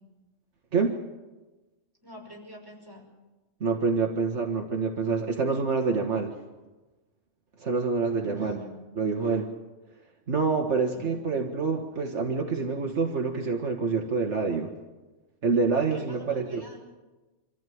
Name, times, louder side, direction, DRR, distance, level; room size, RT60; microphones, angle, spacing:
voice 1, 2.0-3.1 8.2-8.8 10.9-11.1 15.9-16.8, left 1 dB, 15° right, -1 dB, 5.8 m, -45 dB
voice 2, 3.6-6.4 7.6-8.6 9.0-9.5 10.3-14.7 15.4-16.6, right 4 dB, 70° right, 2 dB, 1.9 m, -27 dB
26.0 x 15.0 x 9.3 m, 1.2 s
omnidirectional pair, 1.3 m